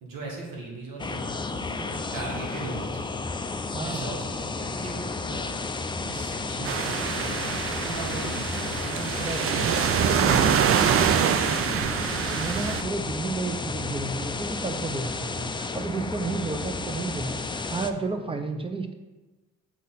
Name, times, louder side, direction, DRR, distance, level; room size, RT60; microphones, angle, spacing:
voice 1, 0.0-3.5 3.8-12.2 15.3-15.6 16.4-16.7, right 3 dB, 90° right, -2 dB, 1.6 m, -38 dB
sound 1, 1.0-17.9, left 3 dB, 15° left, 0.4 m, -32 dB
voice 2, 3.6-4.1 9.0-10.4 12.3-15.3 15.7-18.9, right 3 dB, 15° right, 7 dB, 0.7 m, -32 dB
sound 2, 6.6-12.8, right 8 dB, 45° right, 0.4 m, -25 dB
7.5 x 4.0 x 4.1 m, 1.2 s
cardioid pair, 75°, 32 cm